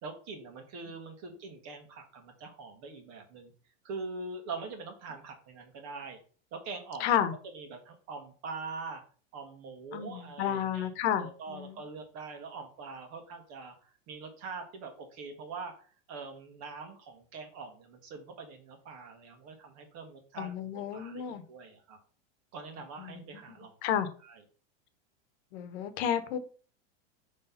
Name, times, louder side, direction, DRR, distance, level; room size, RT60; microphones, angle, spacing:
voice 1, 0.0-3.5 3.8-6.2 6.5-7.2 7.4-9.0 9.3-22.0 22.5-24.4, right 4 dB, 45° right, 5 dB, 1.5 m, -43 dB
voice 2, 7.0-7.3 9.9-11.8 20.4-21.4 23.0-23.2 23.8-24.1 25.5-26.4, left 9 dB, 65° left, 12 dB, 1.0 m, -31 dB
5.5 x 3.2 x 5.6 m, 0.42 s
supercardioid pair, 125°, 35 cm